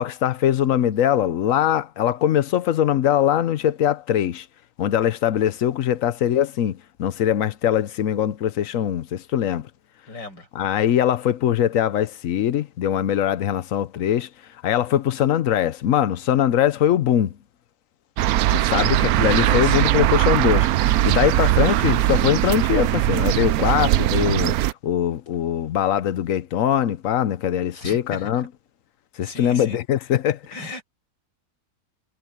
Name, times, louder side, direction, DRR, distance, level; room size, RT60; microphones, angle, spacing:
voice 1, 0.0-4.5 4.8-9.7 10.5-14.3 14.6-17.3 18.5-20.7 21.0-24.6 24.8-28.5 29.2-30.5, left 10 dB, 60° left, 0.9 m, -22 dB
voice 2, 10.1-10.5 18.7-18.9 19.4-19.9 27.7-28.4 29.2-29.8 30.5-30.8, left 3 dB, 85° left, 8.3 m, -36 dB
sound 1, 18.2-24.7, right 14 dB, 70° right, 0.9 m, -20 dB
omnidirectional pair, 1.9 m